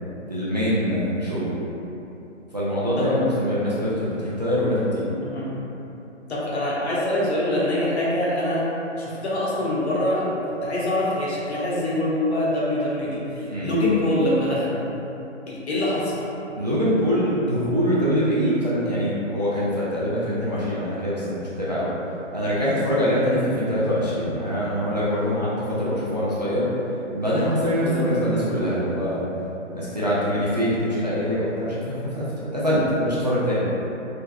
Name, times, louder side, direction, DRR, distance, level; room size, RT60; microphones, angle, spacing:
voice 1, 0.2-1.5 2.5-5.0 13.5-13.7 16.6-21.9 22.3-26.7 27.1-29.3 29.7-32.3 32.5-33.6, equal, 35° right, -10 dB, 0.4 m, -24 dB
voice 2, 6.3-8.7 9.0-14.8 15.5-16.2 27.8-28.1, left 1 dB, 60° left, -6 dB, 0.9 m, -24 dB
3.4 x 2.9 x 2.2 m, 3.0 s
hypercardioid pair, 170°, 38 cm